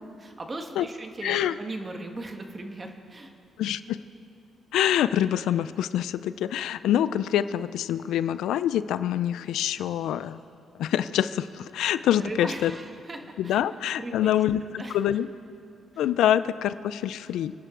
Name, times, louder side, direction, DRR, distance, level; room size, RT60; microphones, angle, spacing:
voice 1, 0.2-3.3 12.2-13.6 14.0-15.0 15.9-16.0, right 2 dB, 30° right, 4 dB, 1.5 m, -38 dB
voice 2, 1.2-1.6 3.6-4.0 4.7-10.4 10.8-12.7 13.4-15.3 16.0-17.5, left 11 dB, 80° left, 14 dB, 0.4 m, -25 dB
27.0 x 10.0 x 3.8 m, 2.5 s
cardioid pair, 90°, 0 cm